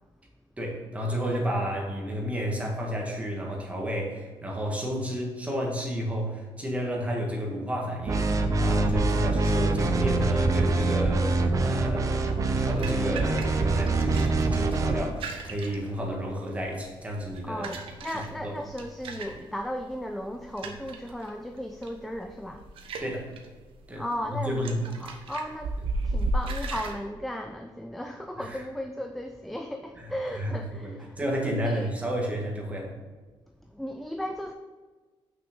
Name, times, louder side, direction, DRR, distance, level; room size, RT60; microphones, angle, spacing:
voice 1, 0.6-17.8 18.4-18.6 23.0-23.3 23.9-24.0 24.5-24.8 28.4-28.6 30.0-30.1 30.3-30.6 30.8-32.9, equal, 15° right, -1 dB, 1.7 m, -31 dB
sound 1, 8.1-15.1, right 3 dB, 35° right, 0.7 m, -25 dB
sound 2, 12.2-26.9, right 2 dB, 70° right, 1.0 m, -37 dB
voice 2, 17.4-22.7 24.0-31.3 31.6-31.9 33.7-34.5, equal, ahead, 5 dB, 0.4 m, -36 dB
6.2 x 6.0 x 5.2 m, 1.4 s
cardioid pair, 135°, 9 cm